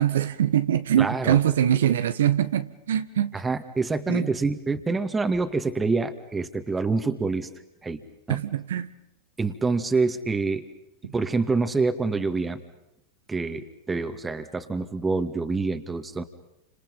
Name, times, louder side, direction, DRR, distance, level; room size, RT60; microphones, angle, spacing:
voice 1, 0.0-3.3 4.1-4.3 8.3-8.9 11.0-11.1, right 10 dB, 75° right, 1.5 m, -23 dB
voice 2, 1.0-1.4 3.3-7.5 7.8-8.0 8.3-8.4 9.4-10.6 11.1-12.6 13.3-16.2, right 3 dB, 15° right, 2.3 m, -26 dB
30.0 x 27.0 x 5.6 m
hypercardioid pair, 95°, 0 cm